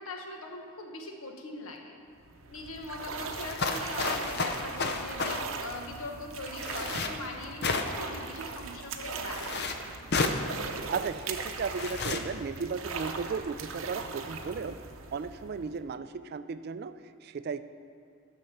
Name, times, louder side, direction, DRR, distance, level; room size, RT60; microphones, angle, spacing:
voice 1, 0.0-2.0 2.5-9.6, left 2 dB, 85° left, 2 dB, 1.2 m, -41 dB
sound 1, 2.1-15.9, right 4 dB, 70° right, 0.7 m, -40 dB
sound 2, 3.4-5.4 6.6-7.1 7.6-8.1 9.3-9.7 10.1-10.4 11.7-12.2, left 3 dB, 50° left, 0.6 m, -31 dB
voice 2, 10.7-14.8 15.1-16.9 17.2-17.6, right 5 dB, 50° right, 12 dB, 0.3 m, -35 dB
11.0 x 6.4 x 5.7 m, 2.3 s
head